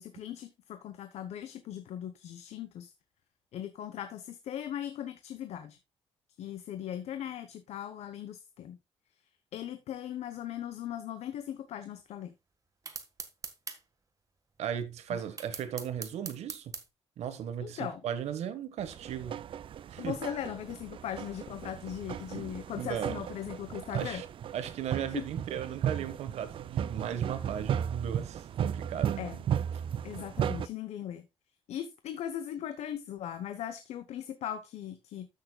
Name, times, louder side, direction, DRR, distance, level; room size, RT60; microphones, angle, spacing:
voice 1, 0.0-2.9 3.5-5.8 6.4-8.8 9.5-12.3 15.1-15.2 17.6-18.0 20.0-24.2 25.1-25.2 29.2-29.4 30.0-31.3 31.7-35.3, left 10 dB, 75° left, 0.9 m, -39 dB
sound 1, 12.9-13.8 15.4-16.8, right 5 dB, 30° right, 1.4 m, -40 dB
voice 2, 14.6-16.8 17.2-19.5 19.9-20.2 22.3-23.2 23.9-24.2 24.5-29.2, right 9 dB, 75° right, 1.4 m, -37 dB
sound 2, 18.8-30.7, right 9 dB, 50° right, 0.4 m, -35 dB
14.0 x 6.5 x 2.3 m
cardioid pair, 125°, 11 cm